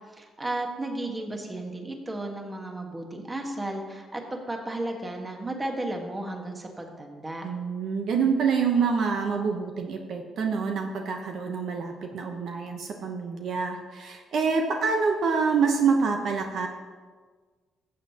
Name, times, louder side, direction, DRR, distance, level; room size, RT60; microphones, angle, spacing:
voice 1, 0.1-7.4, right 1 dB, 20° right, 2 dB, 1.5 m, -34 dB
voice 2, 7.4-16.7, right 5 dB, 70° right, 3 dB, 1.0 m, -26 dB
15.0 x 7.5 x 2.9 m, 1.5 s
cardioid pair, 90°, 0 cm